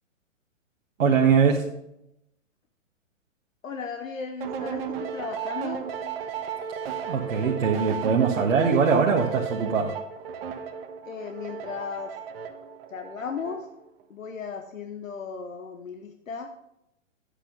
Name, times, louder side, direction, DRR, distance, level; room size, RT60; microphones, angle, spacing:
voice 1, 1.0-1.7 7.0-10.0, right 6 dB, 70° right, -2 dB, 1.5 m, -22 dB
voice 2, 3.6-5.9 11.0-12.2 12.9-13.7 14.1-16.5, left 6 dB, 80° left, 5 dB, 1.1 m, -36 dB
sound 1, 4.4-13.8, right 7 dB, 45° right, 1.2 m, -35 dB
9.8 x 8.4 x 3.9 m, 0.81 s
hypercardioid pair, 125°, 39 cm